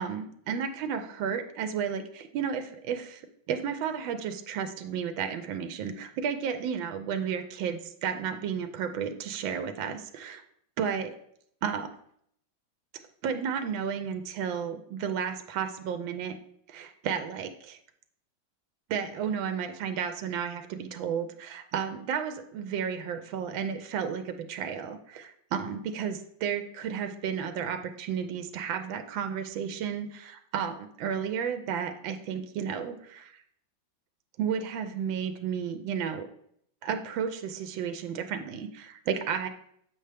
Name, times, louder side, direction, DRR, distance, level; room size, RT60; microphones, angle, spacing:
voice 1, 0.0-3.2 3.5-10.4 10.8-11.2 11.6-11.9 13.2-16.4 16.7-17.8 18.9-33.4 34.4-36.3 36.8-39.5, right 7 dB, 85° right, 7 dB, 1.4 m, -32 dB
7.8 x 5.5 x 3.3 m, 0.69 s
omnidirectional pair, 2.1 m